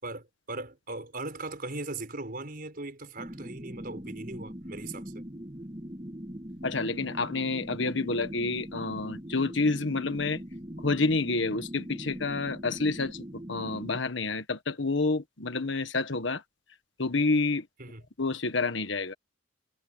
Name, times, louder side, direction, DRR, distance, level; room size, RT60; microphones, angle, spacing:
voice 1, 0.0-5.1 17.8-18.0, right 2 dB, 45° right, 5.1 m, -39 dB
sound 1, 3.2-14.0, equal, 25° right, 2.6 m, -41 dB
voice 2, 6.6-10.4 10.8-13.2 13.5-16.4 17.0-17.7 18.2-19.1, left 3 dB, 65° left, 1.5 m, -28 dB
head